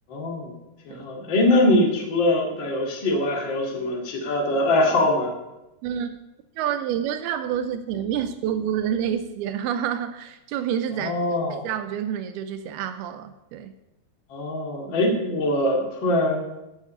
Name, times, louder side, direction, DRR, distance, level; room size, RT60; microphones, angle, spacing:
voice 1, 0.1-0.5 0.9-5.4 11.0-11.7 14.3-16.4, left 1 dB, 35° left, 0 dB, 2.1 m, -23 dB
voice 2, 5.8-6.2 6.6-11.1 11.5-13.7, right 9 dB, 90° right, 9 dB, 2.2 m, -28 dB
13.5 x 6.7 x 8.6 m, 0.96 s
omnidirectional pair, 5.2 m